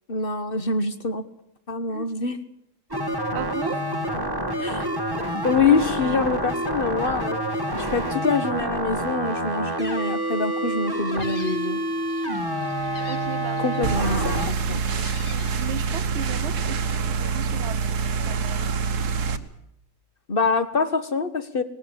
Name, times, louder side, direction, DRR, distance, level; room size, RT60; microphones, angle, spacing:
voice 1, 0.1-1.2 1.7-2.4 4.6-4.9 5.4-7.4 7.8-11.8 13.6-15.0 20.3-21.6, left 4 dB, 35° left, 1.5 m, -25 dB
sound 1, 2.9-14.5, right 1 dB, 15° right, 1.6 m, -27 dB
voice 2, 3.3-3.9 13.1-13.7 15.2-18.0 18.3-18.7, right 8 dB, 45° right, 1.1 m, -37 dB
Gull seagull, 10.9-16.0, left 6 dB, 50° left, 1.6 m, -45 dB
sound 2, 13.8-19.4, right 5 dB, 70° right, 1.7 m, -26 dB
19.0 x 18.5 x 8.3 m
omnidirectional pair, 1.8 m